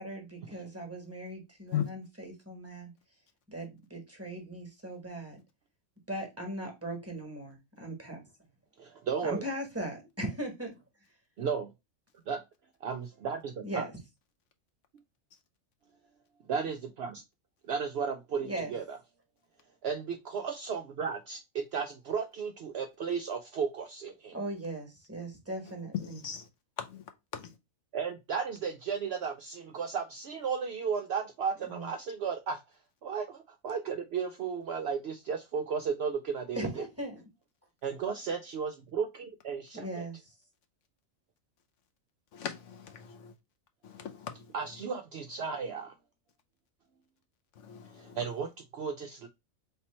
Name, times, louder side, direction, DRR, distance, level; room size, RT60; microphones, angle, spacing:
voice 1, 0.0-2.9 3.5-5.4 6.1-8.2 9.2-10.8 13.6-13.9 18.4-18.7 24.3-26.2 31.7-31.9 36.5-37.2 39.7-40.2, right 1 dB, 10° right, 1.1 m, -39 dB
voice 2, 8.8-9.5 11.4-11.7 12.3-12.4 12.8-13.9 16.4-17.2 17.6-19.0 19.8-24.4 27.9-32.6 33.0-36.8 37.8-40.1 44.5-45.9 47.9-49.3, right 6 dB, 65° right, 0.6 m, -34 dB
voice 3, 26.0-26.5 26.8-27.0 27.3-27.5 42.3-43.3 43.8-44.5 47.6-48.2, left 9 dB, 65° left, 0.9 m, -38 dB
3.6 x 2.9 x 4.2 m
omnidirectional pair, 1.4 m